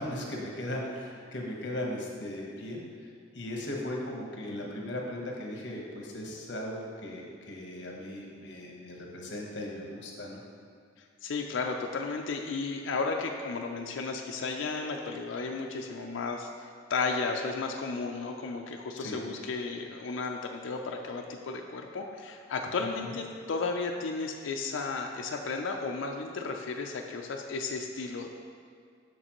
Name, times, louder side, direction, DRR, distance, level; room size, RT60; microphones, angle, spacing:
voice 1, 0.0-2.8 3.3-10.4 19.0-19.2 23.0-23.1, left 1 dB, 65° left, -1 dB, 1.0 m, -37 dB
voice 2, 11.2-16.5 16.9-28.3, left 4 dB, 80° left, 2 dB, 0.4 m, -34 dB
6.6 x 6.4 x 3.0 m, 2.2 s
head